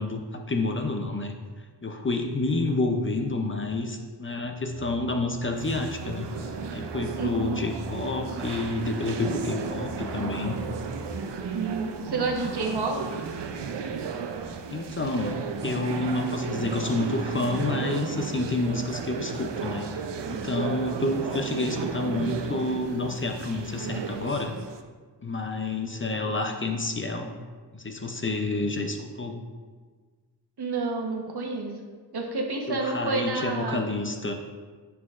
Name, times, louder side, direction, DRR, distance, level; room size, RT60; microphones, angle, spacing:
voice 1, 0.0-6.3 6.7-10.6 14.7-19.9 20.3-24.6 25.2-27.3 27.7-29.4 32.7-34.3, left 2 dB, 30° left, 4 dB, 0.5 m, -29 dB
sound 1, 4.7-11.1, right 2 dB, 35° right, 0.8 m, -42 dB
sound 2, 5.5-24.8, right 6 dB, 85° right, 0.6 m, -34 dB
voice 2, 7.2-7.6 11.5-13.2 20.9-21.0 30.6-31.7 32.1-33.8, right 3 dB, 70° right, 0 dB, 1.1 m, -29 dB
9.7 x 5.8 x 2.4 m, 1.5 s
wide cardioid pair, 100°, 41 cm